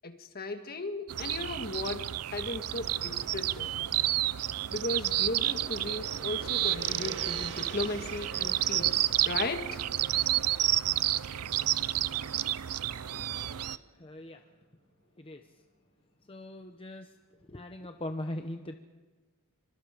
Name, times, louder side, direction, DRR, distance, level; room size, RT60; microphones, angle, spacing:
voice 1, 0.0-3.7 4.7-9.8, left 2 dB, 45° left, 6 dB, 1.8 m, -36 dB
sound 1, 1.1-13.8, right 13 dB, 85° right, 0.6 m, -30 dB
Gong, 4.5-12.8, right 4 dB, 55° right, 2.3 m, -48 dB
voice 2, 14.0-14.4 15.2-15.4 16.3-17.1 17.5-18.7, left 1 dB, 25° left, 6 dB, 0.9 m, -40 dB
26.5 x 25.0 x 5.2 m, 1.2 s
head